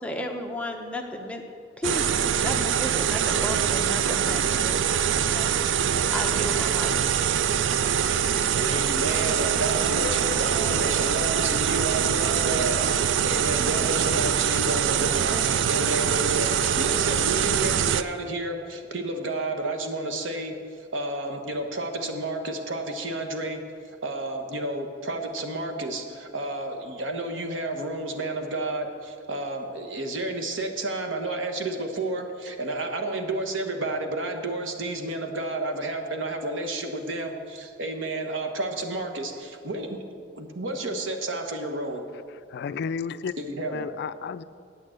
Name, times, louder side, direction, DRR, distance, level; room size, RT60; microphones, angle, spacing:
voice 1, 0.0-1.4 1.8-2.1 2.3-5.6 6.1-6.9 8.4-8.5 9.1-9.4 10.1-10.2, left 1 dB, 5° left, 2 dB, 0.9 m, -34 dB
sound 1, 1.8-18.0, right 8 dB, 75° right, 0.4 m, -24 dB
voice 2, 8.5-40.0 40.3-42.0 43.4-43.9, right 2 dB, 90° right, 5 dB, 1.2 m, -31 dB
voice 3, 42.3-43.3 43.7-44.4, left 6 dB, 60° left, 15 dB, 0.3 m, -32 dB
8.7 x 8.3 x 7.7 m, 2.3 s
head